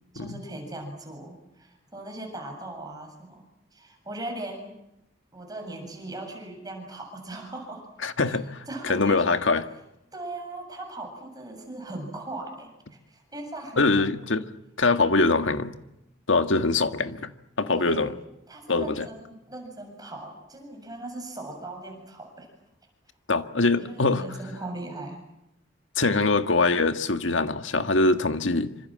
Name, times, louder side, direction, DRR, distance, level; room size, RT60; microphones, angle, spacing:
voice 1, 0.1-3.4 3.7-4.8 5.3-7.9 8.3-8.4 8.7-9.4 10.1-14.0 17.7-18.1 18.5-22.5 23.7-25.2, right 2 dB, 20° right, 7.4 m, -39 dB
voice 2, 8.0-9.7 13.8-14.5 14.8-15.7 16.3-17.3 17.6-18.2 18.7-19.1 23.3-24.3 25.9-28.7, left 3 dB, 75° left, 1.7 m, -23 dB
27.0 x 26.0 x 7.6 m
head